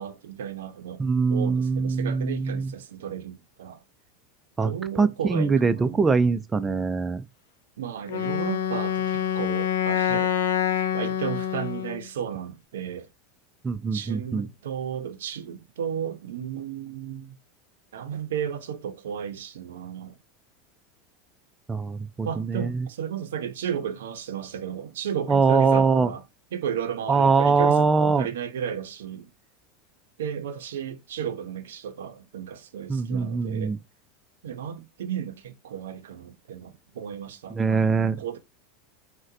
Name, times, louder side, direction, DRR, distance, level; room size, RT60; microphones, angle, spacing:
voice 1, 0.0-1.0 1.3-3.8 4.6-6.2 7.8-10.3 10.8-13.1 13.9-17.4 17.9-20.2 22.2-26.2 26.5-29.3 30.2-33.8 34.4-38.4, right 8 dB, 85° right, 0.5 m, -34 dB
voice 2, 1.0-2.7 4.6-4.7 5.0-7.2 13.6-14.5 21.7-22.9 25.3-26.1 27.1-28.3 32.9-33.8 37.5-38.2, right 4 dB, 20° right, 0.3 m, -22 dB
Wind instrument woodwind instrument, 8.1-12.1, left 9 dB, 80° left, 0.5 m, -26 dB
3.8 x 2.1 x 2.6 m
hypercardioid pair, 100°, 0 cm